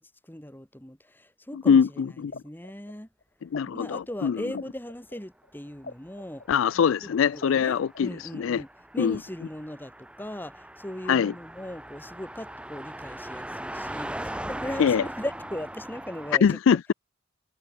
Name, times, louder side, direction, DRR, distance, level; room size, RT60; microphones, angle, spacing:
voice 1, 0.0-3.1 3.6-6.4 7.0-8.7 8.9-16.8, left 1 dB, 10° left, 1.7 m, -38 dB
voice 2, 1.5-2.3 3.4-4.4 6.5-8.6 9.0-9.2 11.1-11.3 14.8-15.0 16.4-16.9, left 7 dB, 80° left, 0.4 m, -23 dB
sound 1, 2.2-3.6 3.9-8.3, left 3 dB, 50° left, 2.4 m, -42 dB
Car passing by, 6.2-16.4, right 1 dB, 5° right, 1.9 m, -40 dB
head